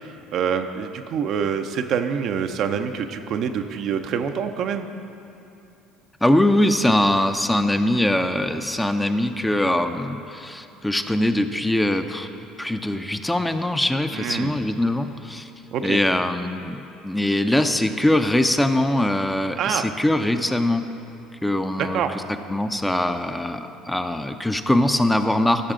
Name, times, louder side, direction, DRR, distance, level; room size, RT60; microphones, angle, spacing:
voice 1, 0.0-4.9 14.1-14.5 15.7-16.0 19.6-19.9 21.8-22.2, right 7 dB, 60° right, 7 dB, 0.6 m, -26 dB
voice 2, 6.2-12.3 12.6-15.5 15.8-20.8 21.4-22.0 22.5-25.7, left 1 dB, 10° left, 7 dB, 0.6 m, -22 dB
15.5 x 6.5 x 3.8 m, 2.7 s
hypercardioid pair, 70°, 0 cm